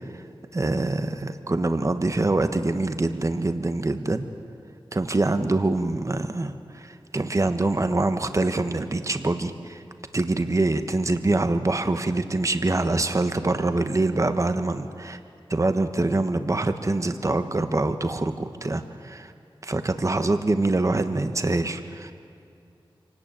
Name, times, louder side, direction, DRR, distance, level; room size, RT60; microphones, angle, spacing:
voice 1, 0.5-4.3 4.9-9.8 10.1-15.2 15.5-19.3 19.6-22.1, right 2 dB, 35° right, 8 dB, 1.3 m, -25 dB
27.0 x 18.5 x 9.1 m, 2.6 s
wide cardioid pair, 90°, 9 cm